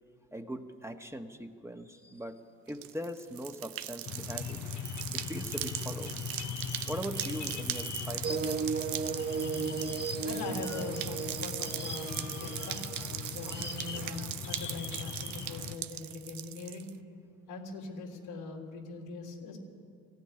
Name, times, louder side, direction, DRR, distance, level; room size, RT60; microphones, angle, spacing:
voice 1, 0.3-4.7 5.1-6.3 6.9-8.8, equal, 5° right, 4 dB, 1.6 m, -41 dB
sound 1, 2.7-16.9, right 13 dB, 70° right, 0.9 m, -40 dB
sound 2, 4.0-15.8, left 8 dB, 55° left, 1.2 m, -40 dB
sound 3, 8.2-14.3, right 5 dB, 30° right, 1.1 m, -36 dB
voice 2, 10.2-12.8 13.3-16.9 17.5-19.6, left 3 dB, 85° left, -1 dB, 3.6 m, -42 dB
18.5 x 15.0 x 9.8 m, 2.2 s
hypercardioid pair, 55°, 36 cm